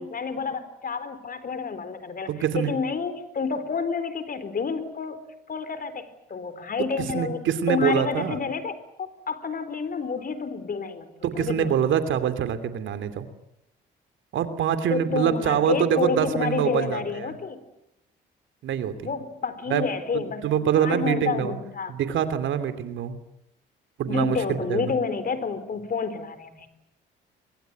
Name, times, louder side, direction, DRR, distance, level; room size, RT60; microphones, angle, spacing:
voice 1, 0.0-2.3 2.5-5.2 5.5-11.1 11.3-11.7 14.9-17.6 19.0-21.9 24.1-26.7, left 5 dB, 45° left, 12 dB, 4.2 m, -29 dB
voice 2, 2.3-2.7 7.0-8.4 11.2-13.3 14.3-17.3 18.6-19.1 19.7-19.9 20.1-21.6 21.9-23.2 24.0-24.4 24.7-24.9, right 9 dB, 70° right, 11 dB, 2.8 m, -25 dB
24.0 x 22.0 x 9.3 m, 0.83 s
supercardioid pair, 60°, 21 cm